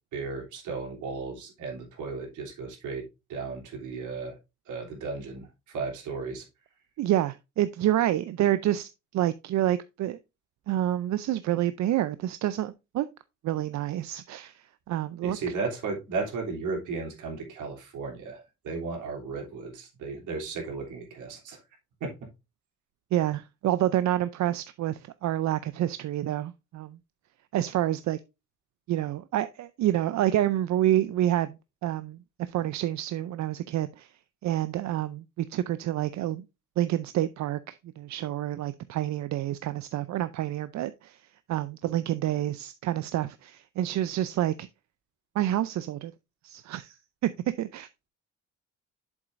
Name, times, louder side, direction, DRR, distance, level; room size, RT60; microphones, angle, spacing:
voice 1, 0.1-3.0 3.3-4.4 4.7-6.4 15.2-21.6 22.0-22.1, right 4 dB, 80° right, 3.2 m, -35 dB
voice 2, 7.0-10.2 10.7-13.1 13.4-15.4 23.1-27.0 27.5-28.2 28.9-32.2 32.5-34.1 34.4-36.4 36.8-41.2 41.5-44.7 45.3-46.1 46.4-47.0 47.2-47.3 47.6-48.1, right 13 dB, 65° right, 0.5 m, -28 dB
7.8 x 7.3 x 2.5 m
cardioid pair, 90°, 30 cm